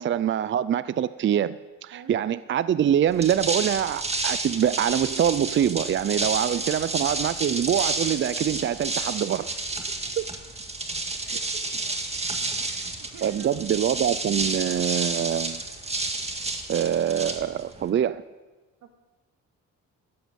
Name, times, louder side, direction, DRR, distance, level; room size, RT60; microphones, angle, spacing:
voice 1, 0.0-9.5 10.2-10.3 13.2-15.6 16.7-18.2, right 9 dB, 40° right, 0.5 m, -24 dB
sound 1, 3.1-17.9, right 2 dB, 20° right, 1.9 m, -30 dB
voice 2, 12.7-13.7, right 5 dB, 85° right, 2.3 m, -47 dB
13.5 x 11.5 x 7.6 m
cardioid pair, 90°, 30 cm